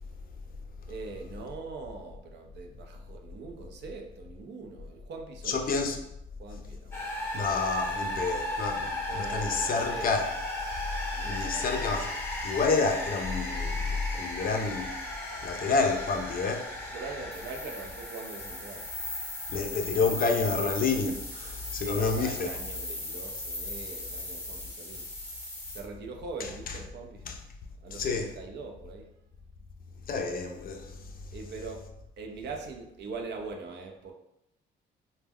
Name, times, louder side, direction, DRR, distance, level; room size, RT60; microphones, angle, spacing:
voice 1, 0.9-5.7 6.4-7.3 9.1-10.1 11.1-11.7 16.9-18.9 21.9-25.1 25.7-27.3 27.8-29.1 31.3-31.9 32.2-34.1, right 4 dB, 60° right, 0.5 m, -42 dB
voice 2, 5.4-6.0 7.3-10.3 11.3-12.1 12.4-15.0 15.4-16.7 19.5-22.5 26.4-26.8 27.2-27.4 27.9-28.3 30.1-31.1, left 4 dB, 45° left, 0.4 m, -29 dB
sound 1, 6.9-25.8, left 1 dB, 10° left, 0.7 m, -36 dB
2.2 x 2.1 x 3.4 m
cardioid pair, 90°, 20 cm